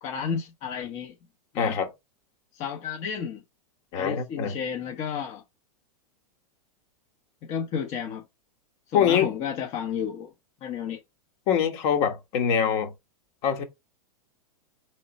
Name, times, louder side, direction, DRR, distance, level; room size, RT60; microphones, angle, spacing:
voice 1, 0.0-1.1 1.5-1.8 2.5-3.4 3.9-5.4 7.4-8.2 8.9-10.3 10.6-11.0, left 7 dB, 35° left, 0.8 m, -32 dB
voice 2, 1.5-1.9 3.9-4.5 8.9-9.3 11.5-12.9 13.4-13.6, left 8 dB, 50° left, 1.3 m, -24 dB
3.7 x 3.3 x 4.0 m
hypercardioid pair, 115°, 19 cm